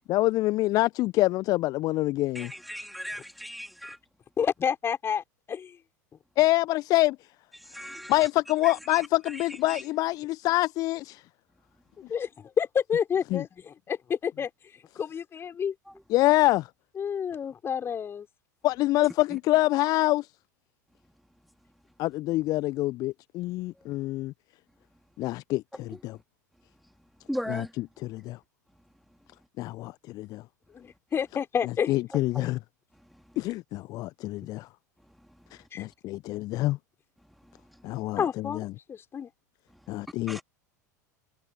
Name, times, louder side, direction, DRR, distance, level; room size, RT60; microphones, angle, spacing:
voice 1, 0.1-2.5 6.4-7.2 8.1-11.2 13.3-13.4 16.1-16.7 18.6-20.3 22.0-24.3 25.2-26.2 27.5-28.4 29.6-30.4 31.9-32.6 33.4-34.7 35.5-36.8 37.8-38.7 39.9-40.4, left 18 dB, 40° left, 1.1 m, -26 dB
voice 2, 2.3-4.0 7.7-8.1 8.6-8.7 9.7-9.8 27.3-27.7 32.3-32.5 40.3-40.4, equal, ahead, 3.1 m, -36 dB
voice 3, 4.4-5.8 12.1-14.5 15.0-15.7 17.0-18.3 30.7-31.9 35.7-35.8 38.2-39.3, left 7 dB, 25° left, 5.7 m, -29 dB
figure-of-eight pair, 80°, 10 cm